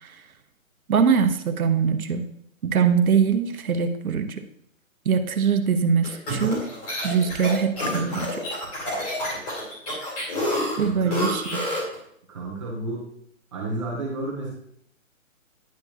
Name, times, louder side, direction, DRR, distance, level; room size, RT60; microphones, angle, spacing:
voice 1, 0.9-2.3 2.6-4.4 5.0-6.7 7.0-8.4 10.8-11.6, right 6 dB, 90° right, 8 dB, 0.9 m, -22 dB
sound 1, 6.0-11.9, left 1 dB, 25° left, 2.8 m, -28 dB
voice 2, 10.8-11.2 12.3-13.1 13.5-14.5, right 2 dB, 20° right, -5 dB, 1.0 m, -31 dB
10.5 x 4.6 x 2.9 m, 0.70 s
hypercardioid pair, 170°, 42 cm